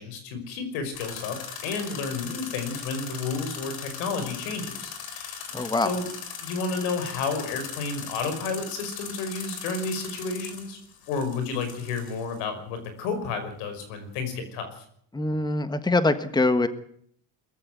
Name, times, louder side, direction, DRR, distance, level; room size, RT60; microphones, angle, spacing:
voice 1, 0.0-5.4 5.8-6.1 6.4-10.8 11.1-14.8, left 4 dB, 90° left, 9 dB, 5.6 m, -31 dB
sound 1, 0.9-12.4, left 7 dB, 55° left, 4.1 m, -39 dB
voice 2, 5.5-5.9 15.1-16.7, left 2 dB, 10° left, 11 dB, 1.5 m, -23 dB
22.0 x 14.5 x 9.4 m, 0.67 s
cardioid pair, 120°, 43 cm